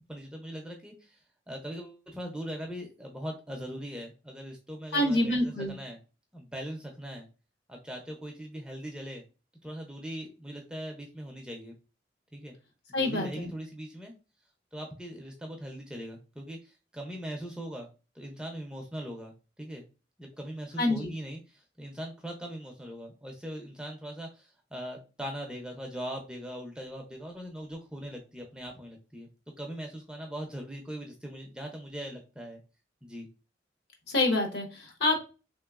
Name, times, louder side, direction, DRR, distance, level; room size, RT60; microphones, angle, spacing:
voice 1, 0.1-1.2 1.5-6.0 6.3-7.3 7.7-9.2 9.6-11.7 12.3-12.6 13.0-14.1 14.7-17.9 18.1-19.8 20.2-29.3 29.6-32.6 33.0-33.3, equal, 5° right, 1 dB, 0.4 m, -40 dB
voice 2, 4.9-5.7 12.9-13.5 20.8-21.1 34.1-35.2, left 1 dB, 70° left, 2 dB, 0.9 m, -27 dB
3.2 x 2.9 x 2.3 m, 0.31 s
head